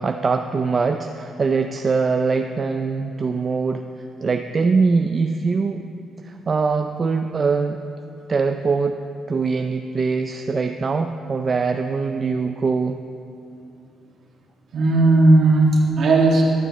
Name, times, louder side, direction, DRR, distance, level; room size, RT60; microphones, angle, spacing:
voice 1, 0.0-3.8 4.2-5.8 6.2-7.8 8.3-9.0 9.3-13.0, right 4 dB, 35° right, 6 dB, 0.4 m, -22 dB
voice 2, 14.7-16.4, right 2 dB, 60° right, -2 dB, 2.0 m, -15 dB
13.5 x 11.5 x 3.1 m, 2.6 s
cardioid pair, 90°, 0 cm